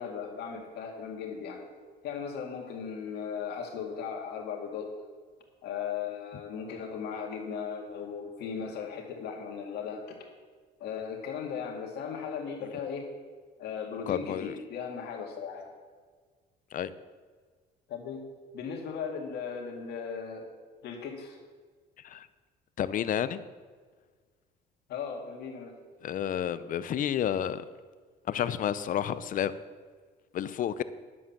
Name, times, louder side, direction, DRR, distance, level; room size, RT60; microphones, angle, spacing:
voice 1, 0.0-1.6 2.0-4.9 5.6-10.3 10.8-13.1 13.6-15.7 17.9-18.2 18.5-20.5 20.8-21.4 24.9-25.8, left 6 dB, 75° left, 2 dB, 2.1 m, -37 dB
voice 2, 14.1-14.5 16.7-16.9 22.0-22.3 22.8-23.4 26.0-27.6 28.3-29.5 30.3-30.8, left 10 dB, 55° left, 15 dB, 0.6 m, -30 dB
11.0 x 7.6 x 7.2 m, 1.5 s
cardioid pair, 110°, 17 cm